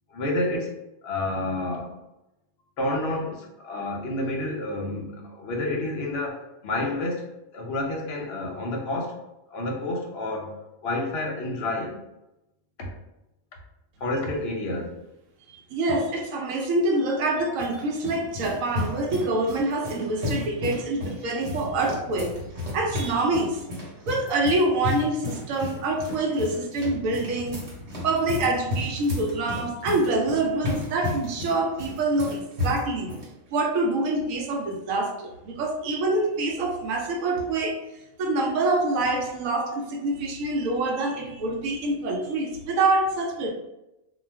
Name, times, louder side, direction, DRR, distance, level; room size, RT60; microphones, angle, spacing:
voice 1, 0.1-0.7 1.0-2.0 2.8-9.2 9.5-10.5 10.8-12.0 12.8-13.0 14.0-14.9, left 2 dB, 60° left, 0 dB, 0.8 m, -29 dB
voice 2, 15.5-22.4 22.7-23.6 24.1-27.6 28.0-33.1 33.5-37.8 38.2-43.5, right 2 dB, 75° right, 2 dB, 0.9 m, -26 dB
sound 1, 17.2-33.3, left 2 dB, 55° right, 1.1 m, -33 dB
2.3 x 2.3 x 3.2 m, 0.93 s
omnidirectional pair, 1.5 m